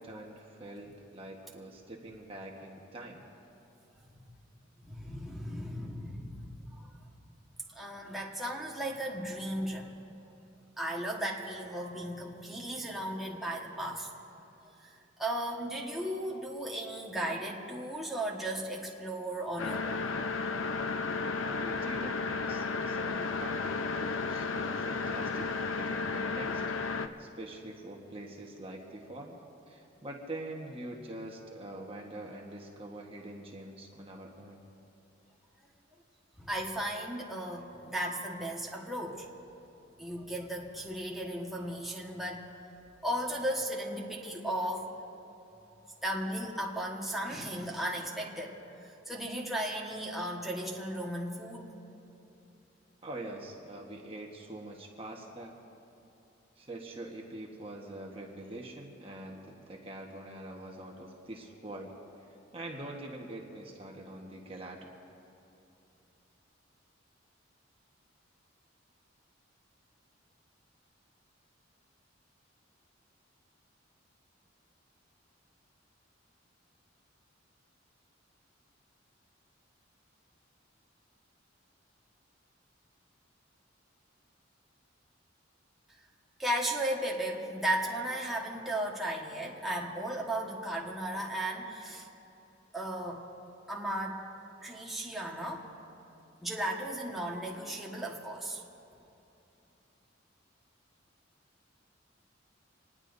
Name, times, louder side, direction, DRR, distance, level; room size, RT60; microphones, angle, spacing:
voice 1, 0.0-3.3 21.4-26.6 27.2-29.4 29.7-34.6 53.0-55.6 56.6-61.9 62.2-64.9, right 1 dB, 30° right, 0 dB, 1.3 m, -44 dB
voice 2, 4.8-6.9 7.7-9.9 10.8-14.1 14.6-20.1 36.4-39.3 40.0-42.6 43.0-44.9 46.0-51.7 86.4-92.1 92.7-93.3 93.7-94.2 94.6-95.7 96.4-98.6, right 1 dB, ahead, -4 dB, 1.5 m, -35 dB
sound 1, 19.6-27.1, left 4 dB, 85° left, 0.7 m, -33 dB
26.0 x 20.0 x 2.7 m, 2.8 s
head